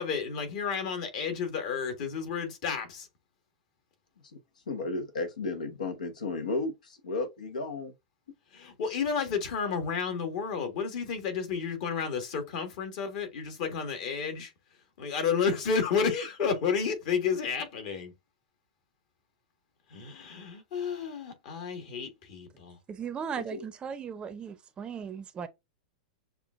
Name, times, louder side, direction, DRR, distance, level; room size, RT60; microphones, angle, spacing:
voice 1, 0.0-3.1 8.5-14.5 15.0-18.1 19.9-22.8, left 6 dB, 55° left, 1.6 m, -31 dB
voice 2, 4.7-7.9 16.1-16.2 23.4-23.6, left 3 dB, 85° left, 1.0 m, -34 dB
voice 3, 22.9-25.5, right 7 dB, 20° right, 0.6 m, -37 dB
6.7 x 2.4 x 2.5 m
hypercardioid pair, 115°, 4 cm